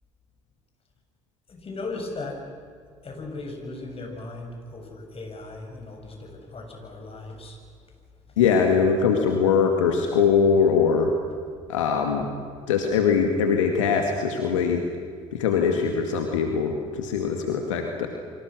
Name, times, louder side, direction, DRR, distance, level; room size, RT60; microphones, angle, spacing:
voice 1, 1.5-2.4 3.0-7.6, left 2 dB, 35° left, 2 dB, 7.2 m, -37 dB
voice 2, 8.4-11.1 11.7-12.3 12.7-14.8 15.3-18.1, left 6 dB, 80° left, 3 dB, 2.1 m, -22 dB
29.0 x 25.0 x 6.4 m, 2.1 s
hypercardioid pair, 55°, 16 cm